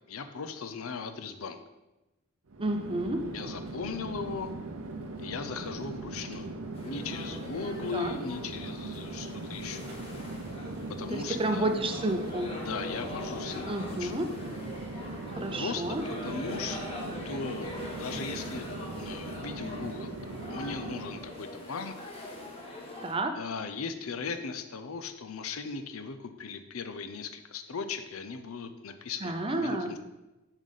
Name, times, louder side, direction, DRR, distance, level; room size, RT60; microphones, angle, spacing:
voice 1, 0.1-1.6 3.3-4.5 5.2-6.5 6.8-9.8 11.0-11.7 12.6-14.3 15.5-15.8 16.2-16.8 17.2-18.7 19.0-21.9 23.3-30.0, left 5 dB, 80° left, 9 dB, 0.6 m, -38 dB
Chatter / Fixed-wing aircraft airplane, 2.5-21.4, right 2 dB, 85° right, 0.7 m, -40 dB
voice 2, 2.6-3.3 7.9-8.2 11.1-12.5 13.7-14.3 15.3-16.0 23.0-23.4 29.2-29.9, right 1 dB, 25° right, 6 dB, 0.5 m, -30 dB
sound 1, 6.7-23.1, left 1 dB, 30° left, 1.4 m, -42 dB
7.3 x 5.0 x 4.1 m, 1.0 s
head